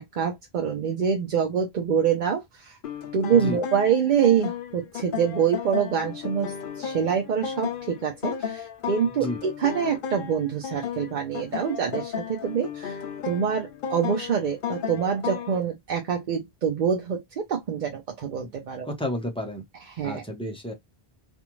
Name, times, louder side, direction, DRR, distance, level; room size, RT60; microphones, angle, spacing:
voice 1, 0.0-2.8 3.1-18.9 19.9-20.2, right 7 dB, 55° right, 0.7 m, -26 dB
sound 1, 2.8-15.6, left 8 dB, 65° left, 0.7 m, -34 dB
voice 2, 18.9-19.6 20.0-20.7, left 1 dB, 5° left, 0.6 m, -31 dB
2.5 x 2.3 x 2.9 m
omnidirectional pair, 1.0 m